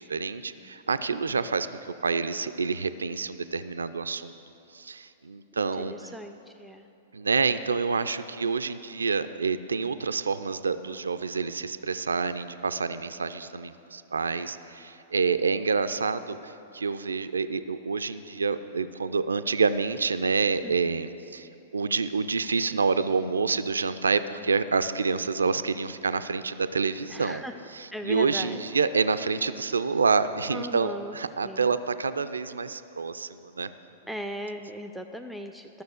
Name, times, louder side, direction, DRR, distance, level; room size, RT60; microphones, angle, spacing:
voice 1, 0.0-1.7 2.0-4.3 4.7-5.9 7.1-27.4 27.7-33.7, right 4 dB, 75° right, 12 dB, 0.4 m, -28 dB
voice 2, 5.6-6.9 20.6-20.7 27.1-27.6 27.9-28.6 30.5-31.2 31.4-31.8 34.0-35.8, equal, ahead, 6 dB, 0.5 m, -38 dB
13.0 x 6.6 x 7.9 m, 2.9 s
figure-of-eight pair, 105°, 0 cm